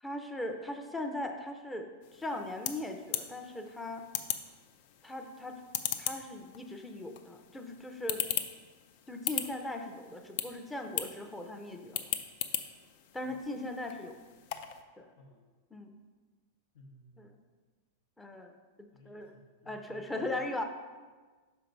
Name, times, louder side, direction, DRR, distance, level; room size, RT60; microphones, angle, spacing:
voice 1, 0.0-4.1 5.0-5.6 6.0-8.3 9.1-12.1 13.1-14.2 15.0-15.1 15.7-15.9 17.2-17.3 18.2-19.3 19.7-20.6, left 1 dB, 5° left, 4 dB, 0.6 m, -39 dB
sound 1, 2.0-14.8, left 10 dB, 55° left, 0.5 m, -39 dB
voice 2, 15.2-15.5 16.7-17.4 18.9-20.4, left 1 dB, 80° left, -3 dB, 0.9 m, -58 dB
5.8 x 4.5 x 5.2 m, 1.4 s
supercardioid pair, 145°, 0 cm